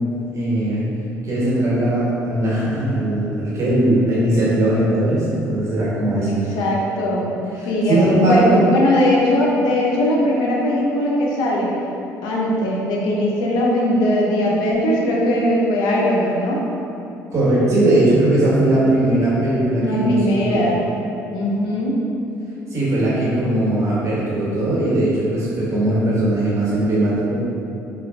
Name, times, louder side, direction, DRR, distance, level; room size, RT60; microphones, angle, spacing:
voice 1, 0.3-0.8 1.2-6.5 7.5-8.6 17.3-20.2 20.5-20.7 22.7-27.4, right 1 dB, 45° right, -8 dB, 1.1 m, -19 dB
voice 2, 6.2-7.3 7.7-8.4 8.7-11.7 12.2-16.6 19.8-20.8 21.3-22.0, left 1 dB, 75° left, -3 dB, 0.5 m, -20 dB
3.4 x 2.3 x 2.2 m, 2.9 s
supercardioid pair, 65°, 7 cm